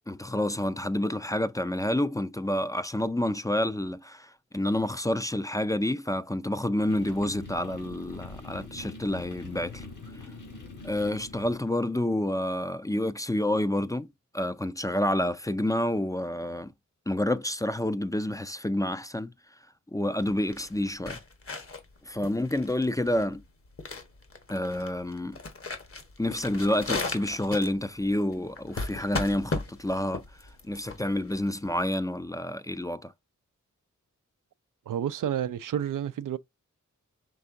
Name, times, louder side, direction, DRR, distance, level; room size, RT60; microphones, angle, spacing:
voice 1, 0.1-9.9 10.8-14.1 14.3-16.7 17.1-19.3 19.9-21.2 22.1-23.4 24.5-25.4 26.2-30.2 30.6-33.1, left 1 dB, 10° left, 0.4 m, -29 dB
sound 1, 6.9-11.9, left 3 dB, 75° left, 2.6 m, -44 dB
sound 2, 20.2-31.9, left 3 dB, 45° left, 1.2 m, -36 dB
voice 2, 34.9-36.4, right 9 dB, 80° right, 0.5 m, -30 dB
5.4 x 3.4 x 2.6 m
cardioid pair, 60°, 31 cm